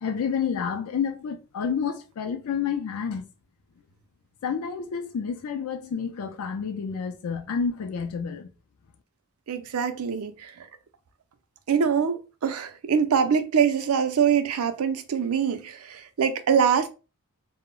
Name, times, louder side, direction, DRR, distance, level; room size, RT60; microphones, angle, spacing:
voice 1, 0.0-3.2 4.4-8.5, left 6 dB, 85° left, 0.4 m, -29 dB
voice 2, 9.5-10.7 11.7-16.9, right 7 dB, 80° right, 0.4 m, -24 dB
2.1 x 2.0 x 3.6 m
head